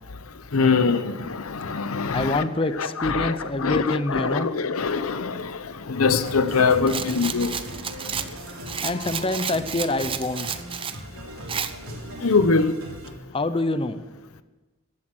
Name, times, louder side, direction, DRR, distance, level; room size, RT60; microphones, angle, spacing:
voice 1, 0.5-2.5 2.7-7.6 12.2-12.7, left 4 dB, 80° left, 0.8 m, -23 dB
voice 2, 2.1-4.5 8.8-10.5 13.3-14.0, left 2 dB, 25° left, 0.6 m, -26 dB
sound 1, 6.2-13.1, right 1 dB, 80° right, 3.4 m, -39 dB
Rattle, 6.9-11.0 11.5-11.7, right 7 dB, 25° right, 0.6 m, -31 dB
15.0 x 12.0 x 6.3 m
head